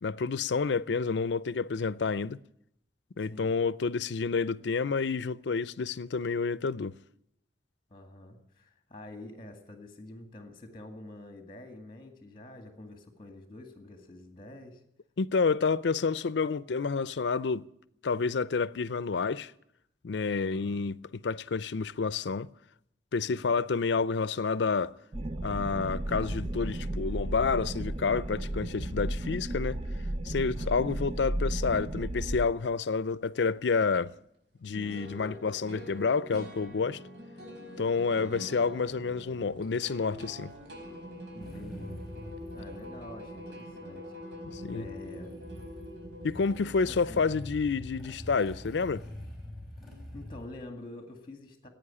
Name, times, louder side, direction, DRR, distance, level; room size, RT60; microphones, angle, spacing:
voice 1, 0.0-2.4 3.2-7.0 15.2-17.7 18.0-19.5 20.0-22.5 23.1-24.9 25.4-29.8 30.2-34.1 34.6-37.0 37.8-40.5 44.5-44.9 46.2-49.0, left 4 dB, 85° left, 0.5 m, -29 dB
voice 2, 7.9-14.8 20.3-20.8 23.2-23.6 30.5-31.0 38.1-38.6 41.3-42.0 42.5-45.4 46.9-47.2 49.8-51.7, left 1 dB, 30° left, 1.9 m, -47 dB
sound 1, 25.1-32.5, right 1 dB, 35° right, 0.6 m, -34 dB
sound 2, 30.6-30.7 34.0-34.1 34.7-46.6, equal, 90° right, 4.7 m, -44 dB
Motorcycle / Engine starting, 41.4-50.5, left 1 dB, ahead, 4.7 m, -45 dB
16.0 x 9.1 x 9.9 m
head